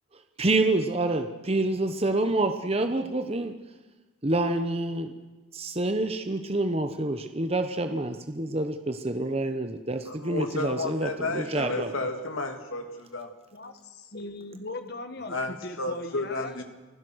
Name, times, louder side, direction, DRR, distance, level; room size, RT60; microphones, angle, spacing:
voice 1, 0.1-3.5 4.2-5.1 5.5-11.9, right 2 dB, 30° right, 7 dB, 1.0 m, -27 dB
voice 2, 10.1-13.3 15.3-16.6, left 2 dB, 85° left, 5 dB, 2.8 m, -32 dB
voice 3, 13.5-16.5, left 2 dB, 50° left, 8 dB, 1.7 m, -39 dB
29.0 x 16.0 x 6.4 m, 1.2 s
head